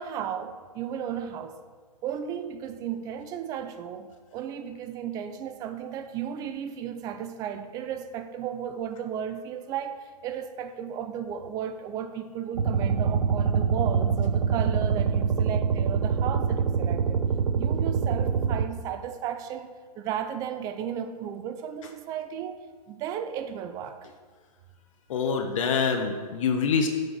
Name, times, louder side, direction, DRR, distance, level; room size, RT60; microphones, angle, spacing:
voice 1, 0.0-1.6 2.0-24.0, right 9 dB, 15° right, 9 dB, 0.4 m, -34 dB
sound 1, 12.5-18.7, right 6 dB, 90° right, 0.7 m, -25 dB
voice 2, 25.1-26.9, left 5 dB, 50° left, 5 dB, 0.9 m, -25 dB
6.8 x 6.5 x 6.1 m, 1.5 s
hypercardioid pair, 140°, 21 cm